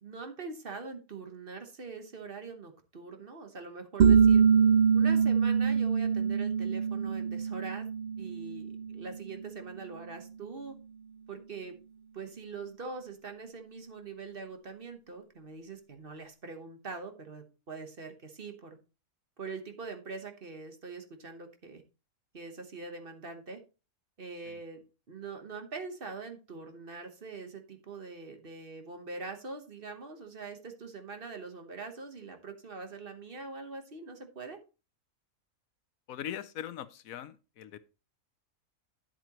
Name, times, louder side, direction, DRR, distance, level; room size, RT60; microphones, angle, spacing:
voice 1, 0.0-4.4 4.9-7.9 8.2-10.8 11.3-11.8 12.1-18.8 19.4-21.8 22.3-23.6 24.2-34.6, right 4 dB, 45° right, 1.3 m, -43 dB
sound 1, 4.0-9.4, right 6 dB, 65° right, 0.5 m, -24 dB
voice 2, 36.1-37.8, left 10 dB, 80° left, 1.1 m, -41 dB
10.5 x 7.7 x 2.9 m
omnidirectional pair, 1.5 m